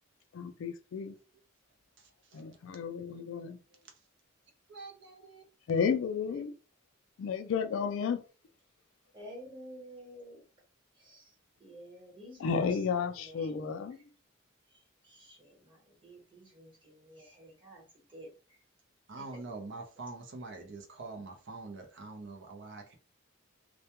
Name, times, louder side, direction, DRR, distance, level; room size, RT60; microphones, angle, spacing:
voice 1, 0.3-1.1 2.3-3.5 5.7-6.5 7.2-8.2 12.4-14.0, left 6 dB, 65° left, 0.3 m, -32 dB
voice 2, 2.0-2.5 3.2-3.3 4.7-5.4 6.2-6.5 19.1-23.0, right 3 dB, 60° right, 0.6 m, -45 dB
voice 3, 9.1-10.4 11.0-11.3 11.6-13.8 14.7-18.3 19.2-19.4 20.6-20.7, equal, 25° right, 1.1 m, -51 dB
2.1 x 2.1 x 2.8 m
head